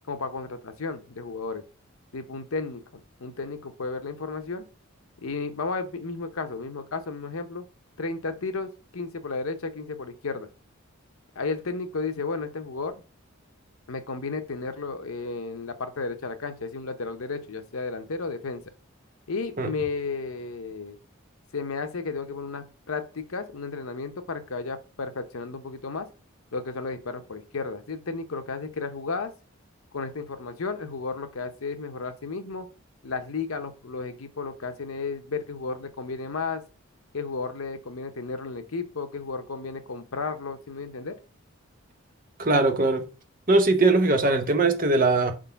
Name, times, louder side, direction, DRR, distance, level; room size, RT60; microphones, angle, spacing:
voice 1, 0.1-1.6 2.1-4.7 5.2-7.6 8.0-10.5 11.4-13.0 13.9-18.6 19.3-21.0 21.5-26.1 26.5-29.3 29.9-32.7 33.0-36.6 37.1-41.2, left 4 dB, 80° left, 0.8 m, -33 dB
voice 2, 42.4-43.1 43.5-45.3, right 2 dB, 40° right, 0.8 m, -21 dB
4.6 x 3.8 x 5.6 m
head